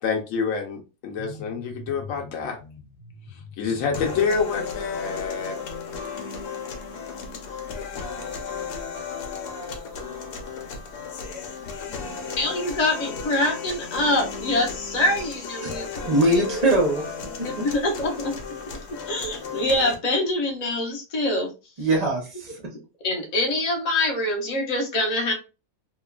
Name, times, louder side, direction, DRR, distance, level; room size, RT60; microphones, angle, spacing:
voice 1, 0.0-2.9 3.2-5.6, left 5 dB, 65° left, 2 dB, 0.9 m, -27 dB
sound 1, 3.9-19.9, left 5 dB, 85° left, 1.2 m, -35 dB
voice 2, 12.4-16.7 17.3-18.3 19.1-21.5 23.0-25.3, left 1 dB, 45° left, 0 dB, 0.5 m, -25 dB
voice 3, 16.1-17.0 21.8-22.5, right 1 dB, 50° right, 0 dB, 0.5 m, -21 dB
2.9 x 2.3 x 2.2 m, 0.30 s
omnidirectional pair, 1.7 m